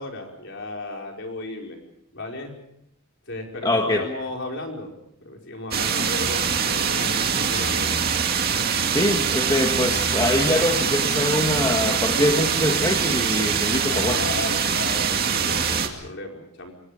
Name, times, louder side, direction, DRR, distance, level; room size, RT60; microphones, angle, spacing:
voice 1, 0.0-1.8 2.1-2.5 3.3-4.9 5.2-8.0 8.5-8.8 13.8-16.7, left 2 dB, 55° left, 1 dB, 5.0 m, -34 dB
voice 2, 3.6-4.0 8.9-14.2, left 1 dB, 20° left, 3 dB, 1.6 m, -23 dB
sound 1, 5.7-15.9, right 6 dB, 45° right, 2.4 m, -23 dB
27.5 x 24.5 x 5.1 m, 0.75 s
head